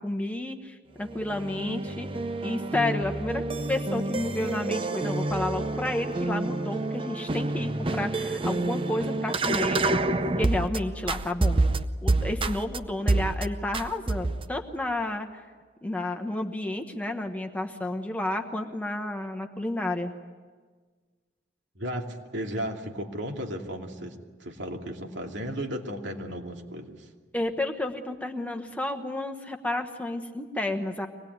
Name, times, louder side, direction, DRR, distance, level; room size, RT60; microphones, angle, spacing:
voice 1, 0.0-2.1 2.4-9.8 10.4-11.6 12.0-15.4 15.8-20.1 27.3-31.1, left 1 dB, 10° left, 4 dB, 1.2 m, -31 dB
sound 1, 1.0-10.8 11.1-12.8 13.1-13.4 13.7-14.5, right 2 dB, 30° right, 0.7 m, -28 dB
voice 2, 21.7-22.1 22.3-27.1, equal, 85° right, 2 dB, 2.7 m, -35 dB
24.5 x 19.5 x 9.5 m, 1.5 s
head